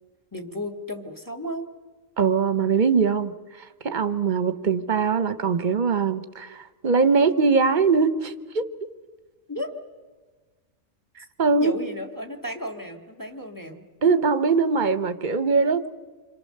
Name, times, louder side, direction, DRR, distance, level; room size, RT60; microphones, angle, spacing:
voice 1, 0.3-1.7 9.5-9.7 11.6-13.9, left 1 dB, 15° left, 4 dB, 1.9 m, -34 dB
voice 2, 2.2-3.3 3.8-8.7 11.2-11.7 14.0-16.0, right 5 dB, 45° right, 11 dB, 1.0 m, -22 dB
27.5 x 25.5 x 6.6 m, 1.3 s
omnidirectional pair, 1.3 m